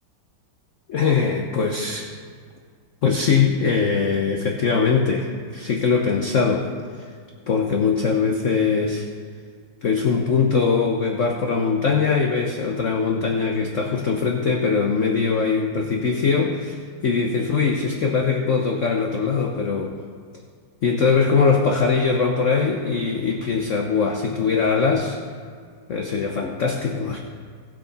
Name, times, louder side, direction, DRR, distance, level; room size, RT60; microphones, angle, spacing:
voice 1, 0.9-2.1 3.0-5.3 5.5-6.7 7.5-9.1 9.8-19.9 20.8-25.2 25.9-27.2, left 5 dB, 60° left, 2 dB, 0.8 m, -21 dB
19.0 x 6.7 x 4.1 m, 2.1 s
omnidirectional pair, 2.3 m